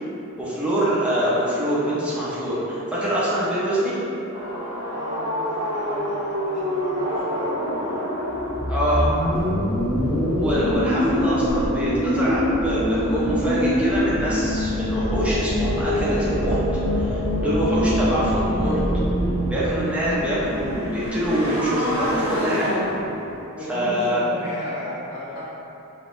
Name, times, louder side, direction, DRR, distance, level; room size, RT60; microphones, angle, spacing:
voice 1, 0.4-4.0 8.7-9.1 10.4-16.6 16.9-18.8 19.5-22.8 23.7-24.2, equal, 5° right, -9 dB, 0.4 m, -24 dB
sound 1, 4.3-23.4, equal, 25° right, 1.0 m, -24 dB
voice 2, 4.9-8.1 9.1-9.3 9.6-9.7 23.6-25.5, left 1 dB, 70° left, -9 dB, 0.4 m, -35 dB
3.3 x 2.0 x 2.4 m, 3.0 s
head